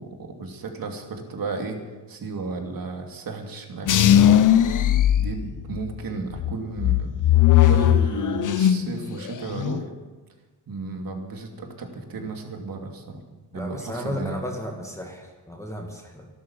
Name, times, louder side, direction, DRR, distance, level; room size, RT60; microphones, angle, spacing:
voice 1, 0.0-1.8 2.1-4.4 5.1-7.1 7.6-9.9 10.7-13.2 13.5-14.4, right 3 dB, 55° right, 3 dB, 2.8 m, -33 dB
sound 1, 3.9-5.9 6.4-9.0 9.3-9.8, left 11 dB, 45° left, 0.8 m, -18 dB
voice 2, 13.5-16.3, equal, 5° left, 1 dB, 2.2 m, -34 dB
12.5 x 12.5 x 7.3 m, 1.3 s
cardioid pair, 95°, 42 cm